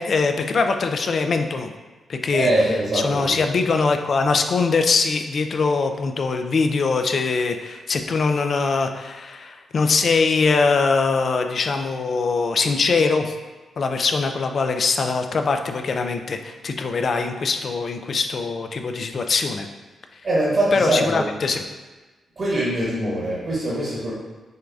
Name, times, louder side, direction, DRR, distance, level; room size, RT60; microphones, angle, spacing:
voice 1, 0.0-1.7 2.1-2.5 2.9-13.3 13.8-19.7 20.7-21.6, left 4 dB, 55° left, 6 dB, 0.3 m, -22 dB
voice 2, 2.3-3.4 20.2-21.2 22.3-24.1, right 1 dB, 55° right, -7 dB, 1.4 m, -22 dB
6.3 x 2.5 x 2.3 m, 1.2 s
cardioid pair, 75°, 0 cm